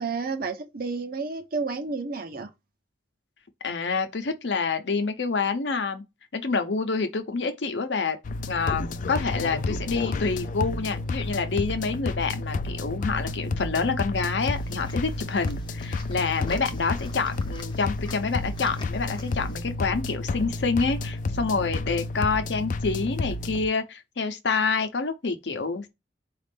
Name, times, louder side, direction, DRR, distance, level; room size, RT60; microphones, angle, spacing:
voice 1, 0.0-2.5, right 4 dB, 55° right, 0.7 m, -31 dB
voice 2, 3.6-6.0 6.3-8.2 8.5-25.9, left 4 dB, 85° left, 0.7 m, -27 dB
sound 1, 8.2-23.7, left 2 dB, 50° left, 0.4 m, -31 dB
sound 2, 14.4-19.6, left 2 dB, 25° left, 0.7 m, -45 dB
4.1 x 2.5 x 3.4 m
head